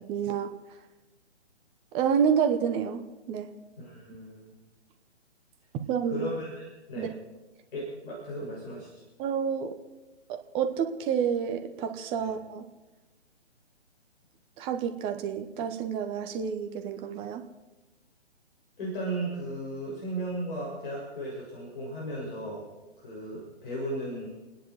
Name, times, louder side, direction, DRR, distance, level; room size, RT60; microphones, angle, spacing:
voice 1, 0.1-0.5 1.9-3.5 5.9-6.2 6.9-7.1 9.2-9.7 10.3-12.6 14.6-17.4, right 7 dB, 15° right, 6 dB, 1.0 m, -29 dB
voice 2, 3.8-4.6 6.1-7.1 7.7-8.9 12.2-12.3 18.8-22.6 23.0-24.3, right 1 dB, 50° left, -4 dB, 6.7 m, -35 dB
29.5 x 10.0 x 4.7 m, 1.1 s
figure-of-eight pair, 135°, 35 cm